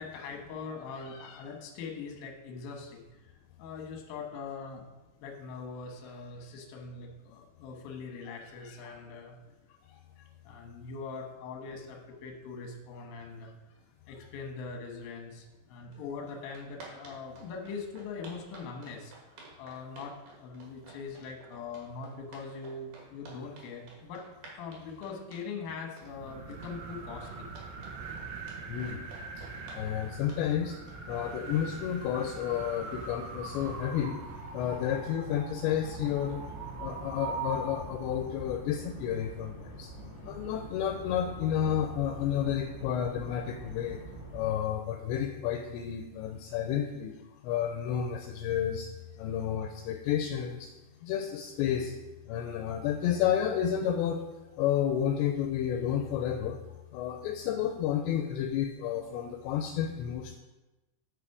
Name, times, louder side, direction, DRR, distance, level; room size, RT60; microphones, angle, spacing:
voice 1, 0.0-3.1 3.6-4.8 5.2-9.4 9.7-13.5 14.1-19.1 19.6-24.2 24.5-27.5 29.6-30.2 34.6-34.8 47.3-47.4, left 4 dB, 65° left, 2 dB, 2.5 m, -42 dB
sound 1, 15.9-16.0 16.3-31.8, right 3 dB, 55° right, 2.7 m, -51 dB
sound 2, 26.0-38.2, right 4 dB, 75° right, 2.8 m, -42 dB
voice 2, 28.7-29.0 29.4-29.5 29.8-30.8 31.1-34.2 34.5-36.4 36.8-39.9 40.2-44.0 44.3-47.1 47.4-48.9 49.2-50.7 51.0-51.9 52.3-54.2 54.6-56.6 56.9-60.4, left 9 dB, 85° left, 4 dB, 2.6 m, -31 dB
sound 3, 35.5-44.6, right 1 dB, 30° right, 1.4 m, -46 dB
8.3 x 6.0 x 4.7 m, 1.1 s
omnidirectional pair, 5.4 m